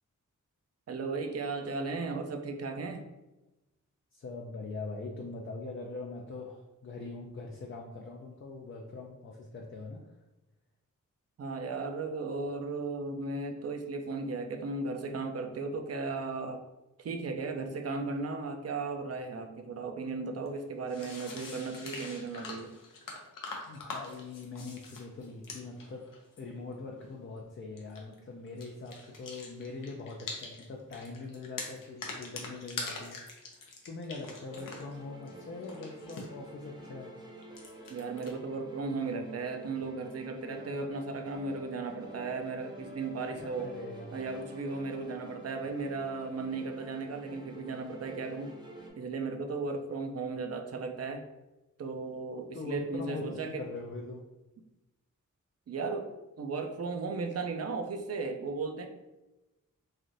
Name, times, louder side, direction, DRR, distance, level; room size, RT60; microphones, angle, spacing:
voice 1, 0.9-3.0 11.4-16.6 17.0-22.7 37.9-43.7 44.1-48.5 49.0-51.3 51.8-53.6 55.7-56.1 56.4-58.9, right 3 dB, 50° right, 6 dB, 0.4 m, -36 dB
voice 2, 4.1-10.0 23.7-26.0 26.4-37.2 43.3-44.2 52.5-54.2, left 3 dB, 40° left, -1 dB, 0.4 m, -42 dB
sound 1, 20.5-20.6 20.9-26.4 27.8-28.2 28.5-30.7 30.9-35.0 35.3-36.3 37.4-38.3, left 3 dB, 85° left, 0.6 m, -44 dB
sound 2, 34.4-48.9, equal, 15° right, 0.7 m, -49 dB
3.2 x 2.5 x 2.6 m, 1.0 s
wide cardioid pair, 65°, 32 cm